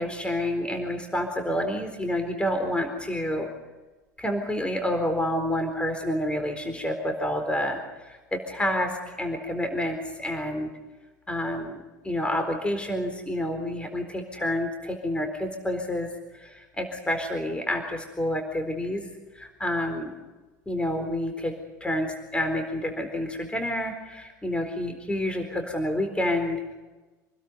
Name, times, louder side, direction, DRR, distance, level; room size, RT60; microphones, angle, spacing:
voice 1, 0.0-3.5 4.2-10.7 11.3-11.7 12.0-16.1 16.3-19.0 19.3-20.1 20.7-21.5 21.8-26.7, left 1 dB, 10° left, 5 dB, 4.1 m, -29 dB
28.0 x 20.5 x 5.5 m, 1.2 s
figure-of-eight pair, 70°, 10 cm